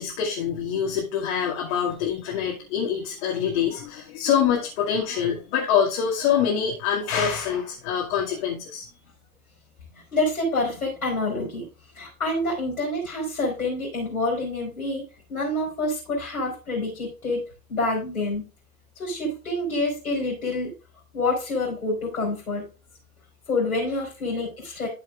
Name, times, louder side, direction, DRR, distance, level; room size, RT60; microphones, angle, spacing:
voice 1, 0.0-8.8, left 8 dB, 55° left, -3 dB, 2.4 m, -25 dB
voice 2, 10.1-11.6 11.9-15.0 15.3-17.4 17.7-18.4 19.0-20.7 21.1-22.6 23.5-24.9, left 2 dB, 80° left, -3 dB, 4.3 m, -27 dB
12.5 x 7.0 x 2.4 m, 0.33 s
figure-of-eight pair, 95°, 43 cm